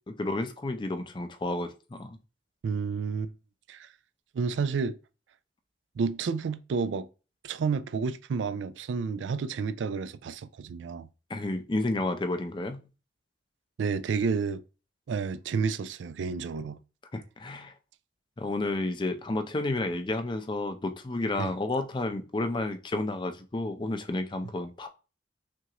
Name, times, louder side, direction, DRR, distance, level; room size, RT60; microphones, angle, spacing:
voice 1, 0.1-2.2 11.3-12.9 17.1-17.7 18.4-24.9, left 2 dB, 25° left, 0.5 m, -31 dB
voice 2, 2.6-3.3 3.7-3.9 4.3-5.0 6.0-7.1 7.4-11.1 13.8-14.6 15.1-16.8 21.4-21.5, right 5 dB, 80° right, 0.3 m, -30 dB
5.9 x 2.5 x 2.9 m
head